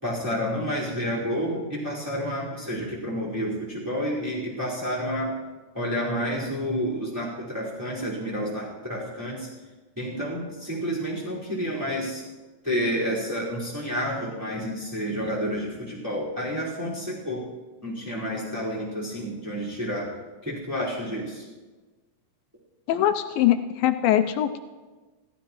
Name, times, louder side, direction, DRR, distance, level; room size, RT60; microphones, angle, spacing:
voice 1, 0.0-5.3 5.7-9.5 10.0-12.2 12.6-17.4 17.8-20.1 20.4-21.4, equal, 5° right, -7 dB, 4.4 m, -30 dB
voice 2, 22.9-24.6, left 12 dB, 85° left, 7 dB, 2.4 m, -22 dB
27.5 x 15.0 x 3.1 m, 1.3 s
omnidirectional pair, 4.1 m